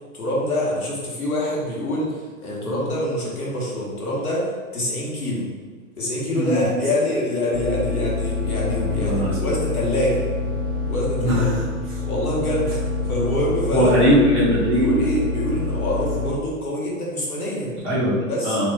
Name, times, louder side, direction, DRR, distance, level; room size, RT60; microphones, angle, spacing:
voice 1, 0.1-5.5 6.0-10.3 10.9-11.4 12.0-12.8 13.1-13.9 14.7-17.7 18.3-18.6, left 1 dB, 85° left, -4 dB, 1.1 m, -25 dB
sound 1, 7.5-16.3, left 4 dB, 35° left, 0.7 m, -26 dB
voice 2, 8.9-9.4 11.2-11.6 13.7-14.9 17.8-18.2 18.4-18.7, equal, 5° left, -15 dB, 0.3 m, -20 dB
2.9 x 2.1 x 3.2 m, 1.4 s
figure-of-eight pair, 105°, 43 cm